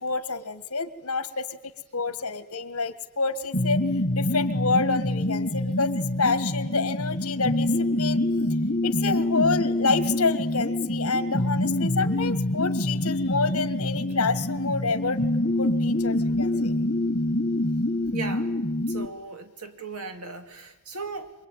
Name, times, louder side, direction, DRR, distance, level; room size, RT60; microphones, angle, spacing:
voice 1, 0.0-3.8 4.1-8.2 8.8-15.2 15.6-16.8 17.0-17.1, left 4 dB, 65° left, 12 dB, 1.7 m, -28 dB
sound 1, 3.5-19.1, left 1 dB, 40° left, 1.2 m, -26 dB
voice 2, 18.1-18.5 18.9-21.3, right 4 dB, 90° right, 7 dB, 2.6 m, -37 dB
25.0 x 22.5 x 9.4 m, 1.1 s
head